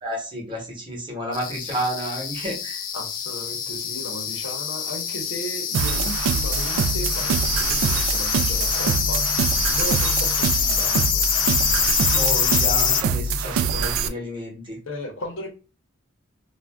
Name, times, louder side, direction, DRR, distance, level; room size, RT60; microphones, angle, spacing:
voice 1, 0.0-2.8 12.1-14.8, equal, 25° right, 0.9 m, -31 dB
sound 1, 1.3-13.0, left 8 dB, 40° left, 0.4 m, -25 dB
voice 2, 2.9-11.2 14.9-15.5, equal, 70° left, 0.7 m, -36 dB
sound 2, 5.7-14.1, right 5 dB, 90° right, 0.3 m, -24 dB
2.4 x 2.1 x 3.3 m
head